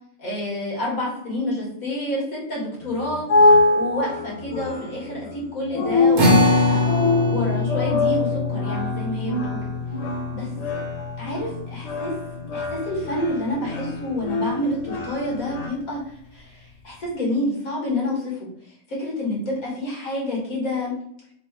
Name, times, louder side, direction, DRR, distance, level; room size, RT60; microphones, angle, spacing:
voice 1, 0.2-6.9 7.3-9.6 10.3-10.8 11.2-12.1 12.5-16.0 16.3-18.5 18.9-20.9, left 1 dB, 85° left, -4 dB, 2.2 m, -28 dB
sound 1, 2.8-15.7, left 2 dB, 65° left, 0.3 m, -24 dB
sound 2, 6.2-12.8, left 2 dB, 45° right, 1.0 m, -24 dB
4.3 x 2.4 x 4.6 m, 0.66 s
omnidirectional pair, 1.4 m